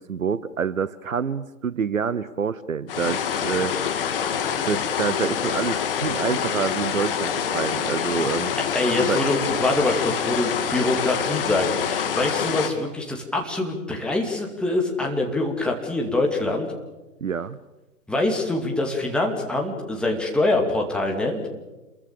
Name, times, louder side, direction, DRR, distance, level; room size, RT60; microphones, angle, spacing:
voice 1, 0.0-3.7 4.6-8.5 9.0-9.2 17.2-17.6, right 6 dB, 55° right, 16 dB, 1.1 m, -27 dB
sound 1, 2.9-12.7, left 8 dB, 35° left, 2.6 m, -26 dB
voice 2, 8.7-16.7 18.1-21.4, left 2 dB, ahead, 0 dB, 2.4 m, -24 dB
28.0 x 22.0 x 6.8 m, 1.1 s
figure-of-eight pair, 130°, 47 cm